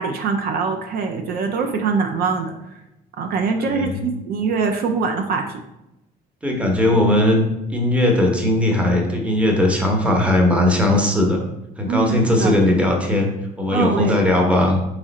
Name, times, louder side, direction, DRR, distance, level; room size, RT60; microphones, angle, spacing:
voice 1, 0.0-2.5 3.2-5.6 11.9-12.6 13.7-14.2, right 5 dB, 65° right, 5 dB, 0.5 m, -23 dB
voice 2, 3.6-4.0 6.4-7.4 7.7-11.5 11.8-13.3 13.6-14.8, left 1 dB, 5° right, 1 dB, 0.9 m, -18 dB
3.7 x 3.1 x 4.1 m, 0.90 s
cardioid pair, 110°, 17 cm